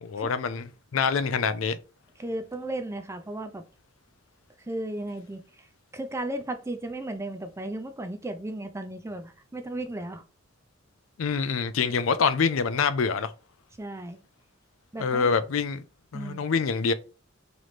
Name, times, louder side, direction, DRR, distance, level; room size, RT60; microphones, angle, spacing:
voice 1, 0.0-1.8 11.2-13.3 15.0-15.8 16.1-16.9, left 5 dB, 80° left, 0.4 m, -26 dB
voice 2, 2.2-3.6 4.7-5.7 5.9-10.2 11.9-12.0 13.8-14.2 14.9-15.3 16.1-16.5, right 1 dB, 15° right, 0.4 m, -35 dB
3.1 x 3.1 x 4.0 m
head